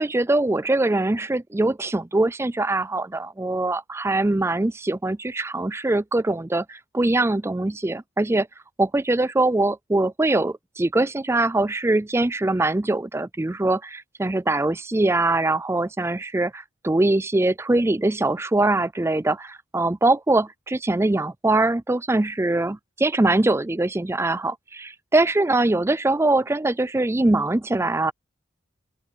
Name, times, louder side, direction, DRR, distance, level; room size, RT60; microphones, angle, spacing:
voice 1, 0.0-8.5 8.8-28.1, right 2 dB, 15° right, 0.4 m, -22 dB
open air
head